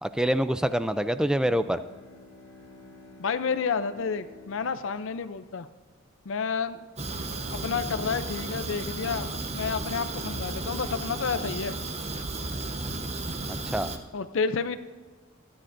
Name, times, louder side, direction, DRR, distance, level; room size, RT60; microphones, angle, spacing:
voice 1, 0.0-1.8 13.5-13.9, equal, 5° right, 11 dB, 0.4 m, -26 dB
Bowed string instrument, 1.2-6.6, left 2 dB, 15° left, 4.1 m, -52 dB
voice 2, 3.2-5.7 6.3-6.8 7.5-11.7 14.1-14.8, left 5 dB, 70° left, 11 dB, 0.5 m, -30 dB
Fire, 7.0-14.0, right 2 dB, 30° right, 0.9 m, -34 dB
25.5 x 10.0 x 2.6 m, 1.4 s
head